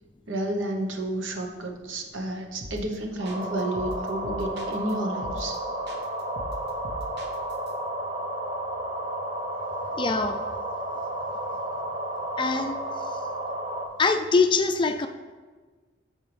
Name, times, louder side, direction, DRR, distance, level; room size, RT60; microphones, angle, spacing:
voice 1, 0.3-5.6, right 1 dB, 85° right, 3 dB, 1.0 m, -31 dB
sound 1, 2.6-2.9 3.2-4.9 5.2-5.6 5.9-7.7, equal, 60° right, 1.1 m, -39 dB
sound 2, 3.2-13.9, right 1 dB, 30° right, 0.9 m, -32 dB
voice 2, 9.9-10.4 12.4-12.8 14.0-15.1, left 4 dB, 25° left, 7 dB, 0.4 m, -23 dB
13.5 x 4.7 x 3.3 m, 1.4 s
head